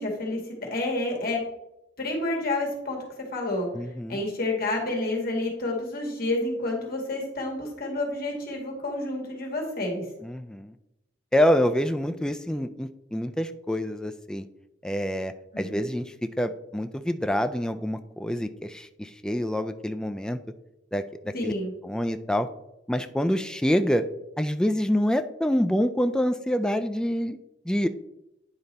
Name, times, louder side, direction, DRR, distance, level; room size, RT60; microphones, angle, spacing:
voice 1, 0.0-1.4 2.0-3.0 3.3-3.7 4.1-10.0 15.5-15.9 21.3-21.7, left 2 dB, 55° left, 0 dB, 1.9 m, -29 dB
voice 2, 3.7-4.2 10.2-10.7 11.3-14.5 14.8-20.4 20.9-21.5 21.8-22.5 22.9-24.1 24.4-27.4 27.7-27.9, equal, 5° left, 9 dB, 0.3 m, -26 dB
9.7 x 3.9 x 4.1 m, 0.88 s
head